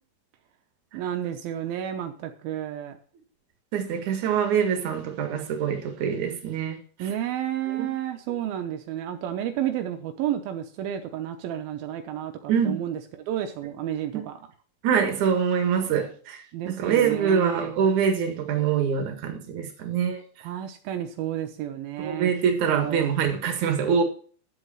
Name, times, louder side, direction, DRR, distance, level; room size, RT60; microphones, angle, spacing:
voice 1, 0.9-3.0 7.0-14.4 16.5-17.8 20.4-22.3 22.7-23.2, right 11 dB, 85° right, 2.8 m, -31 dB
voice 2, 3.7-6.8 7.8-7.9 12.5-12.8 14.8-16.4 16.7-20.2 22.0-24.0, right 7 dB, 60° right, 3.0 m, -24 dB
9.8 x 8.1 x 5.6 m
omnidirectional pair, 4.1 m